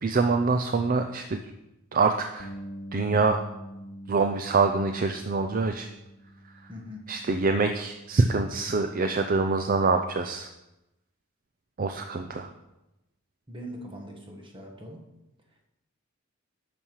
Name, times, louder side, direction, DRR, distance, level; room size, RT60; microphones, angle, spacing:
voice 1, 0.0-1.4 1.9-2.5 2.9-3.4 4.1-5.9 7.1-10.5 11.8-12.5, right 4 dB, 40° right, 6 dB, 0.5 m, -25 dB
Bass guitar, 2.4-8.6, equal, 45° left, 1.0 m, -45 dB
voice 2, 6.7-7.1 13.5-15.1, equal, 25° right, 1 dB, 1.5 m, -41 dB
11.5 x 7.1 x 4.7 m, 0.94 s
head